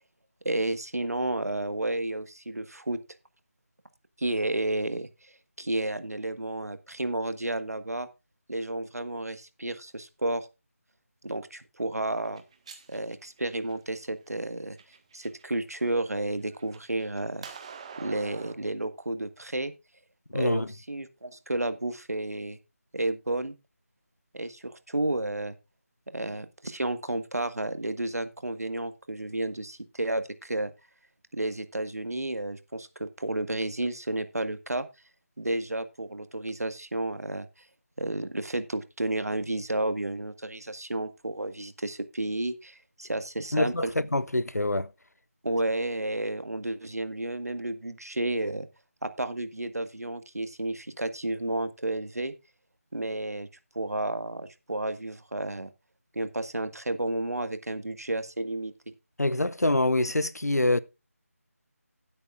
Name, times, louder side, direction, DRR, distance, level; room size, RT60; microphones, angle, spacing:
voice 1, 0.4-3.0 4.2-8.1 8.5-10.5 11.2-12.4 12.9-14.8 15.1-17.4 18.0-19.7 20.3-22.6 22.9-23.5 24.3-25.6 26.1-30.7 31.3-34.9 35.4-37.5 38.0-43.9 45.4-48.7 49.0-52.3 52.9-53.5 53.7-55.7 56.1-58.7, right 1 dB, 75° right, 1.5 m, -31 dB
sound 1, 12.2-14.0 14.6-15.4 15.8-18.5, right 6 dB, 25° right, 1.4 m, -46 dB
voice 2, 20.3-20.7 43.5-44.9 59.2-60.8, left 2 dB, 90° left, 0.8 m, -25 dB
16.5 x 8.7 x 2.4 m
figure-of-eight pair, 165°, 8 cm